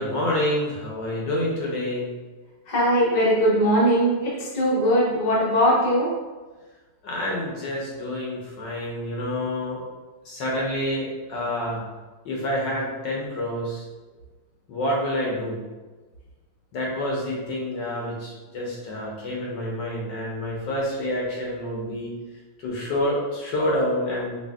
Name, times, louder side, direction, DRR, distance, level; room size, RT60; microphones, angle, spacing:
voice 1, 0.0-2.1 7.0-9.8 10.2-11.8 12.2-13.8 14.7-15.6 16.7-22.1 22.6-24.4, left 1 dB, 65° left, -3 dB, 1.2 m, -28 dB
voice 2, 2.7-6.2, equal, 40° left, -6 dB, 0.6 m, -20 dB
5.3 x 2.8 x 2.3 m, 1.3 s
omnidirectional pair, 2.3 m